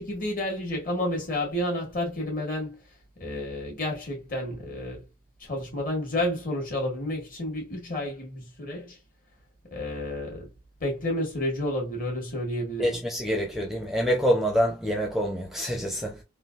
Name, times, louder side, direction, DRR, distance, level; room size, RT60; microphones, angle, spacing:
voice 1, 0.0-2.8 3.2-5.1 5.4-9.0 9.7-10.5 10.8-13.0, left 1 dB, 45° left, 1.7 m, -30 dB
voice 2, 12.8-16.2, equal, ahead, 0.6 m, -26 dB
3.8 x 2.3 x 2.4 m
head